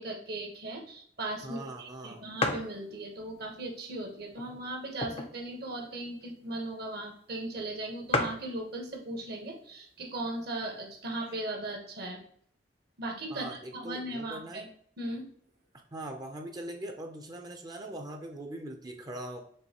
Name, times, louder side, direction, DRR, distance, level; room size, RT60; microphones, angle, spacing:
voice 1, 0.0-12.2 13.0-13.4 13.7-14.7 15.0-15.3, right 2 dB, 60° right, 2 dB, 1.1 m, -38 dB
sound 1, 1.4-1.5 1.9-2.0 2.4-2.8 3.4-3.5 4.3-5.5 5.8-5.9 6.1-6.4 7.1-7.2 7.5-7.6 7.8-7.9 8.1-8.5 9.4-9.7 10.3-10.4 10.5-11.3, left 3 dB, 35° left, 0.4 m, -32 dB
voice 2, 1.4-2.2 13.3-14.6 15.9-19.4, right 1 dB, 20° right, 4 dB, 0.5 m, -41 dB
5.4 x 3.1 x 2.9 m, 0.63 s
head